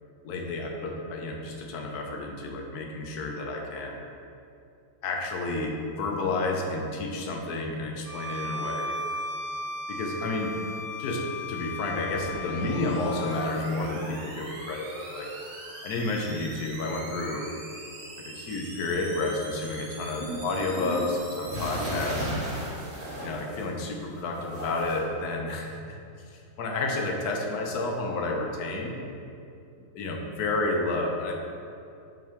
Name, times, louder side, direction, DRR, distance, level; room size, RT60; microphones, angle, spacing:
voice 1, 0.2-4.1 5.0-9.0 9.9-10.5 11.0-15.3 15.8-17.5 18.2-22.5 23.2-25.8 26.6-29.1 29.9-31.3, left 2 dB, 65° left, 1 dB, 1.2 m, -31 dB
Bowed string instrument, 8.0-13.4, left 2 dB, 45° left, 1.5 m, -36 dB
sound 1, 12.1-22.1, right 2 dB, 85° right, 1.8 m, -42 dB
sound 2, 19.6-23.9 24.2-25.0, right 1 dB, 35° right, 2.0 m, -34 dB
9.1 x 5.3 x 3.0 m, 2.6 s
omnidirectional pair, 2.0 m